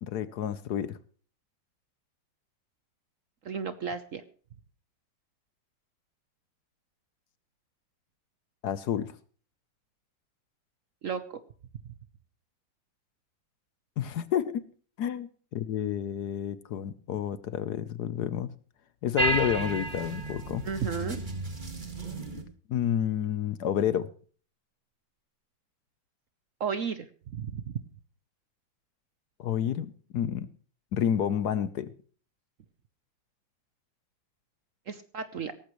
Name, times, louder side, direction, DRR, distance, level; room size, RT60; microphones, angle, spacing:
voice 1, 0.0-1.0 8.6-9.2 14.0-14.7 15.0-18.5 19.0-20.6 22.7-24.1 29.4-30.5 30.9-31.9, left 9 dB, 65° left, 15 dB, 1.2 m, -30 dB
voice 2, 3.4-4.2 11.0-11.4 20.6-21.2 26.6-27.7 34.9-35.5, right 6 dB, 55° right, 11 dB, 1.0 m, -33 dB
sound 1, 19.2-22.4, right 2 dB, 25° right, 2.0 m, -32 dB
17.5 x 14.5 x 3.1 m, 0.42 s
omnidirectional pair, 2.1 m